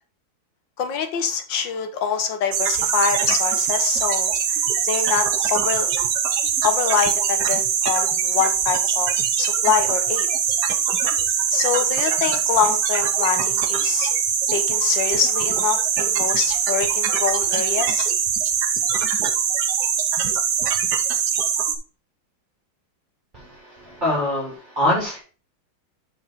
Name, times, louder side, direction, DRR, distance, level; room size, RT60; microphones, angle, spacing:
voice 1, 0.8-4.6 4.9-5.9 6.6-9.1 9.4-10.3 11.5-14.1 14.5-18.1, left 7 dB, 70° left, 7 dB, 1.7 m, -25 dB
sound 1, 2.5-21.8, right 7 dB, 65° right, 1.4 m, -22 dB
voice 2, 23.3-25.2, left 1 dB, 25° right, -7 dB, 3.0 m, -24 dB
6.4 x 5.6 x 4.3 m, 0.37 s
omnidirectional pair, 2.1 m